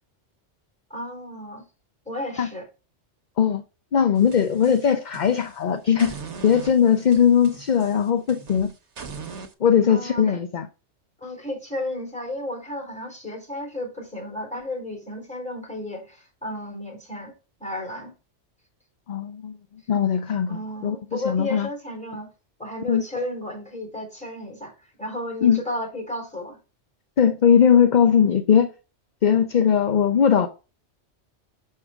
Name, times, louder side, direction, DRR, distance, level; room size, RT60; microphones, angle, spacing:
voice 1, 0.9-1.6 2.1-2.6 9.9-10.4 11.2-17.3 17.6-18.1 20.5-22.3 22.6-24.7 25.0-26.6, left 1 dB, 5° left, 3.9 m, -33 dB
voice 2, 3.9-6.2 6.4-8.7 9.6-10.7 19.1-19.6 19.9-21.7 22.9-23.0 25.4-25.6 27.2-28.7 29.2-30.5, left 8 dB, 50° left, 0.7 m, -19 dB
sound 1, 4.1-5.6 6.0-9.5, right 5 dB, 70° right, 1.5 m, -40 dB
6.6 x 6.6 x 3.5 m
omnidirectional pair, 1.2 m